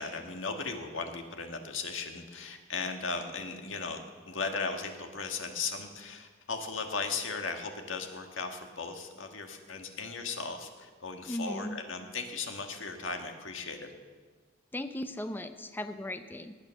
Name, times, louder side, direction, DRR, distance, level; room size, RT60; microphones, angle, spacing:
voice 1, 0.0-4.0 4.3-13.9, left 4 dB, 85° left, 5 dB, 1.6 m, -37 dB
voice 2, 11.3-11.8 14.7-16.5, left 1 dB, 10° left, 9 dB, 0.5 m, -37 dB
18.5 x 8.7 x 6.4 m, 1.5 s
head